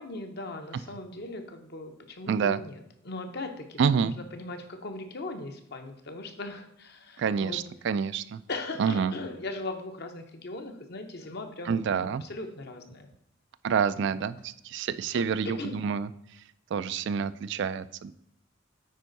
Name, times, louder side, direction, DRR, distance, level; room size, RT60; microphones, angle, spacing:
voice 1, 0.0-7.6 8.5-13.1 15.1-15.8, left 2 dB, 55° left, 5 dB, 0.9 m, -39 dB
voice 2, 2.3-2.6 3.8-4.2 7.2-8.4 8.8-9.1 11.7-12.2 13.6-16.1 16.7-18.1, right 6 dB, 60° right, 15 dB, 0.3 m, -28 dB
9.2 x 4.5 x 4.0 m, 0.76 s
head